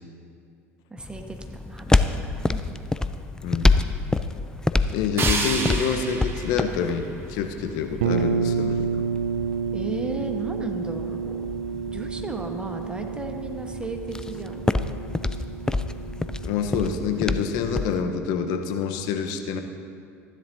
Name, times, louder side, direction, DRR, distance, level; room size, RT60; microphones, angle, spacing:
voice 1, 0.9-2.7 9.7-11.5 11.9-14.7, right 2 dB, 10° right, 4 dB, 1.2 m, -35 dB
sound 1, 1.0-18.0, left 2 dB, 10° left, 0.4 m, -28 dB
voice 2, 3.4-3.8 4.9-9.0 16.4-19.6, left 6 dB, 60° left, 6 dB, 0.9 m, -27 dB
sound 2, 5.2-8.1, right 3 dB, 30° right, 1.5 m, -31 dB
sound 3, 8.0-17.7, right 6 dB, 70° right, 0.6 m, -30 dB
15.0 x 10.5 x 2.7 m, 2.5 s
hypercardioid pair, 70°, 8 cm